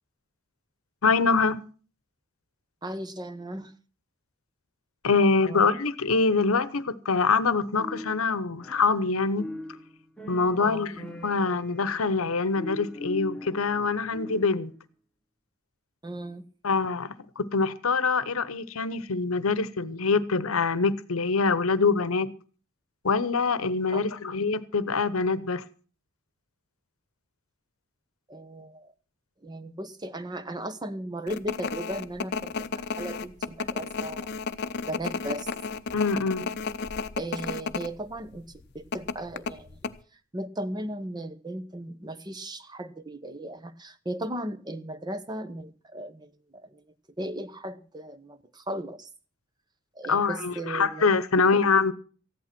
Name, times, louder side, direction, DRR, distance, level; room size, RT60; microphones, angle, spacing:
voice 1, 1.0-1.6 5.0-9.5 10.3-14.7 16.6-22.3 23.0-25.6 35.9-36.5 50.1-51.9, left 4 dB, 75° left, 17 dB, 0.9 m, -24 dB
voice 2, 2.8-3.7 5.4-5.7 10.6-10.9 16.0-16.5 23.9-24.0 28.3-28.9 29.4-34.4 34.9-35.5 37.2-38.4 38.7-39.8 40.3-46.8 47.2-49.1 50.0-51.0 51.5-51.6, right 1 dB, 20° right, 12 dB, 0.9 m, -36 dB
sound 1, 7.8-9.1 9.4-14.7, left 1 dB, 5° left, 1.2 m, -41 dB
sound 2, 31.3-37.9 38.2-38.3 38.9-39.9, left 5 dB, 50° left, 0.7 m, -32 dB
14.5 x 11.0 x 6.0 m, 0.39 s
head